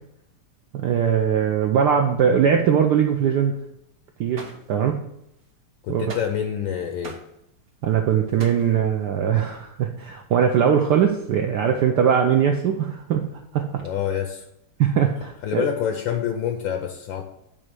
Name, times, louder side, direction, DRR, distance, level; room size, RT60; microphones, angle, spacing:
voice 1, 0.7-3.5 4.2-5.0 5.9-6.2 7.8-13.2 13.5-13.6 14.8-15.6, right 8 dB, 75° right, 3 dB, 0.9 m, -21 dB
sound 1, 4.3-4.6 5.4-5.5 6.1-6.4 6.7-7.3 7.7-7.8 8.0-8.7, right 3 dB, 45° right, 1.0 m, -40 dB
voice 2, 5.8-7.2 13.8-14.4 15.4-17.2, left 9 dB, 75° left, 5 dB, 1.3 m, -27 dB
8.6 x 3.2 x 6.0 m, 0.82 s
omnidirectional pair, 2.4 m